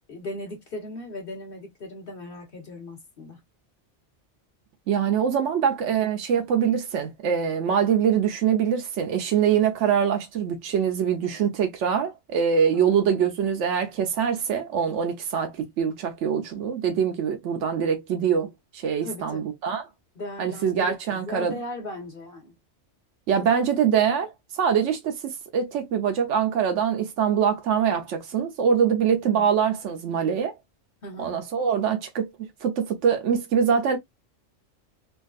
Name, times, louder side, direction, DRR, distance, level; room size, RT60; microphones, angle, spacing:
voice 1, 0.1-3.4 12.7-13.0 19.0-19.4 20.1-22.5 29.2-29.5 31.0-31.3, left 2 dB, 50° left, 1.5 m, -37 dB
voice 2, 4.9-19.8 20.4-21.5 23.3-30.5 31.2-34.0, right 7 dB, 90° right, 1.0 m, -24 dB
3.6 x 2.3 x 2.3 m
omnidirectional pair, 1.2 m